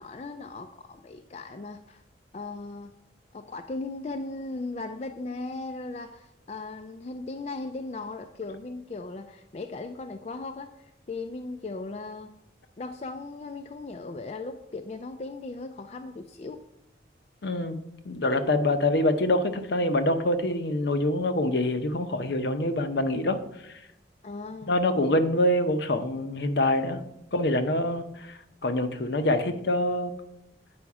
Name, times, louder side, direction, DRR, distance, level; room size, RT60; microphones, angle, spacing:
voice 1, 0.0-2.0 2.3-2.9 3.3-12.3 12.8-16.6 24.2-24.7, left 3 dB, 35° left, 7 dB, 0.4 m, -37 dB
voice 2, 17.4-17.8 18.0-23.8 24.7-27.0 27.3-30.1, left 1 dB, 65° left, 9 dB, 0.7 m, -25 dB
8.6 x 5.1 x 4.7 m, 0.84 s
head